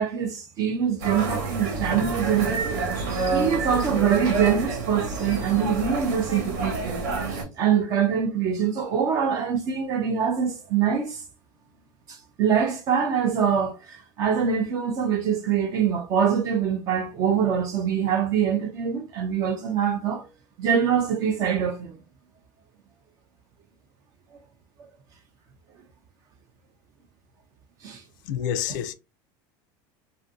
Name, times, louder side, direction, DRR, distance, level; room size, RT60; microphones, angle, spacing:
voice 1, 0.0-2.8 3.3-11.2 12.1-20.3 20.6-22.0 27.8-28.0 28.7-28.8, right 7 dB, 35° right, 0.4 m, -24 dB
sound 1, 1.0-7.4, right 4 dB, 70° right, 1.2 m, -28 dB
voice 2, 28.3-28.9, left 9 dB, 70° left, 0.4 m, -28 dB
2.5 x 2.5 x 2.5 m
cardioid pair, 175°, 11 cm